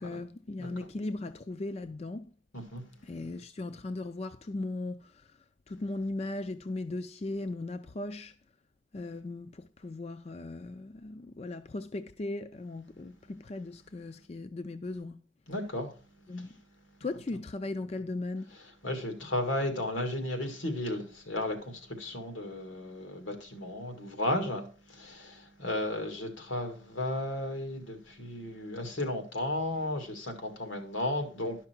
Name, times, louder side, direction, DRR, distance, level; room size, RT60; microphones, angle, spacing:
voice 1, 0.0-2.3 3.0-8.3 8.9-15.2 16.3-16.6 17.0-18.6, left 2 dB, 35° left, 0.4 m, -38 dB
voice 2, 15.5-15.9 18.8-24.6 24.9-31.6, left 1 dB, 90° left, 2.2 m, -34 dB
11.5 x 5.9 x 4.4 m
head